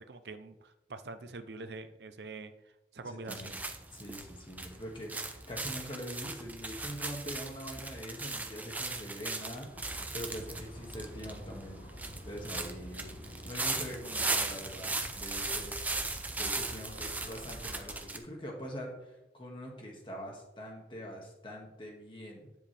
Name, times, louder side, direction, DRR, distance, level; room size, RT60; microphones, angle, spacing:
voice 1, 0.0-2.5 2.9-3.6, right 3 dB, 75° right, 10 dB, 0.6 m, -45 dB
voice 2, 3.0-3.5 3.9-11.9 12.2-15.8 16.4-22.5, equal, 30° left, 0 dB, 1.9 m, -44 dB
sound 1, 3.3-18.2, right 3 dB, 10° right, 0.7 m, -38 dB
sound 2, 9.7-18.0, equal, 75° left, 3.6 m, -47 dB
10.0 x 7.2 x 3.4 m, 0.95 s
head